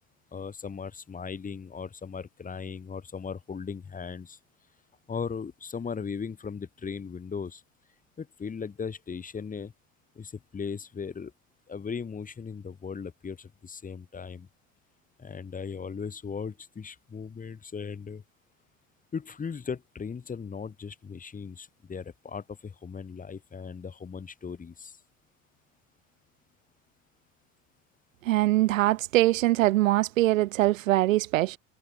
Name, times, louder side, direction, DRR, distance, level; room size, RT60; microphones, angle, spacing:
voice 1, 0.3-4.4 5.1-7.6 8.2-9.7 10.2-11.3 11.7-14.5 15.2-18.2 19.1-25.0, left 6 dB, 20° left, 2.0 m, -37 dB
voice 2, 28.3-31.6, right 17 dB, 70° right, 0.5 m, -23 dB
figure-of-eight pair, 75°, 41 cm